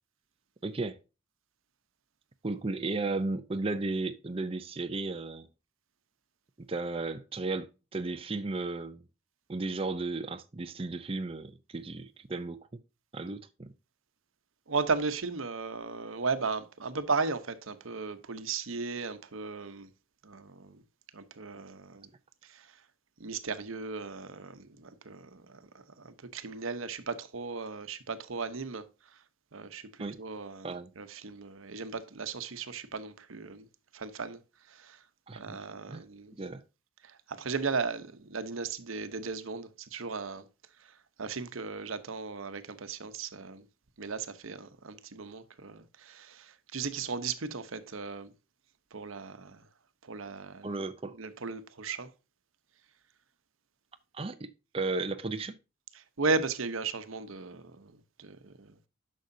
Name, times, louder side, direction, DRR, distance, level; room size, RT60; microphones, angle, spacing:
voice 1, 0.6-1.0 2.4-5.5 6.6-9.0 9.5-12.8 13.1-13.7 30.0-30.2 30.6-30.9 35.3-35.6 35.9-36.0 36.3-36.6 50.6-51.2 54.1-55.6, right 3 dB, 30° right, 0.5 m, -34 dB
voice 2, 14.7-19.9 20.2-20.8 21.1-22.1 22.5-22.7 23.2-25.6 26.0-28.8 29.5-29.8 30.2-33.7 33.9-34.4 34.7-35.0 35.3-36.3 37.0-40.4 41.2-43.6 44.0-48.3 48.9-49.6 50.0-50.8 51.2-52.1 55.9-57.9 58.2-58.7, right 4 dB, 90° right, 0.9 m, -36 dB
10.5 x 6.3 x 2.7 m
head